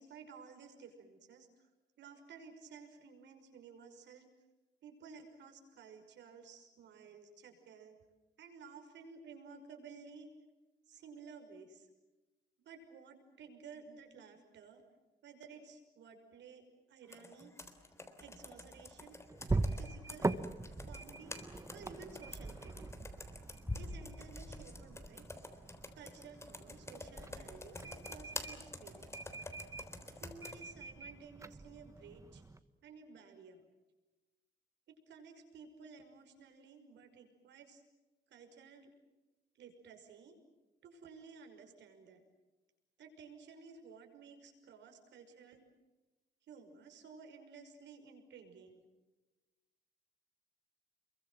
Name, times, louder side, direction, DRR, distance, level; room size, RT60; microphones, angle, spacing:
voice 1, 0.0-1.7 2.0-4.3 4.8-8.0 8.4-10.3 10.9-11.9 12.6-14.8 15.2-17.5 18.2-19.2 19.5-20.4 20.8-21.3 21.7-22.9 23.8-25.3 26.0-29.3 30.1-32.4 32.8-33.7 34.9-37.8 38.3-38.9 39.6-40.4 40.8-42.2 43.0-45.6 46.5-48.8, right 5 dB, 80° right, 6 dB, 5.7 m, -55 dB
Computer keyboard, 17.1-30.6, left 2 dB, 15° left, 3.5 m, -48 dB
sound 1, 18.2-32.6, right 3 dB, 15° right, 1.2 m, -42 dB
29.0 x 23.0 x 7.6 m, 1.1 s
cardioid pair, 120°, 18 cm